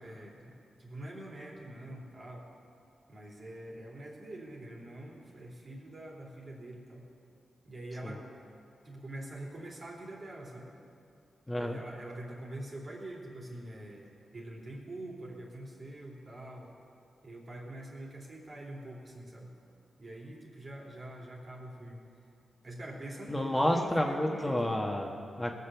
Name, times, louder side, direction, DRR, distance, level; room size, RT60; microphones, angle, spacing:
voice 1, 0.0-2.5 3.1-7.1 7.6-8.2 8.8-10.7 11.5-16.7 17.2-19.5 20.0-22.0 22.6-24.7, right 1 dB, 50° right, -3 dB, 3.6 m, -45 dB
voice 2, 11.5-11.8 23.3-25.5, left 1 dB, 15° left, 1 dB, 1.4 m, -30 dB
19.5 x 6.6 x 7.1 m, 2.5 s
cardioid pair, 50°, 0 cm